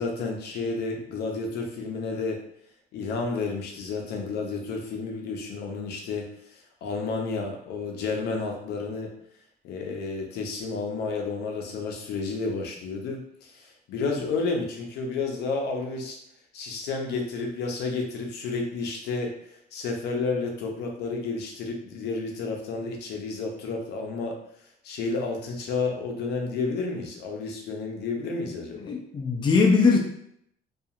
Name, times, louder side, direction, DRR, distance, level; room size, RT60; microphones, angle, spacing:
voice 1, 0.0-2.4 2.9-9.1 9.6-16.2 16.5-19.3 19.7-24.4 24.8-28.9, left 4 dB, 75° left, 2 dB, 0.6 m, -31 dB
voice 2, 28.8-30.0, left 4 dB, 30° left, 0 dB, 0.5 m, -20 dB
2.7 x 2.4 x 2.4 m, 0.70 s
cardioid pair, 110°, 17 cm